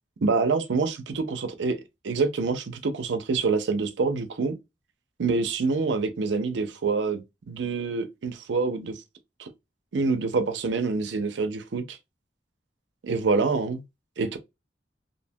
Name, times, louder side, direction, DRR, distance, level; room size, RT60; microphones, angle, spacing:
voice 1, 0.2-1.8 2.0-4.6 5.2-7.2 7.5-9.0 9.4-9.5 9.9-12.0 13.0-13.8 14.2-14.4, right 4 dB, 85° right, 0.5 m, -26 dB
2.6 x 2.1 x 2.6 m
head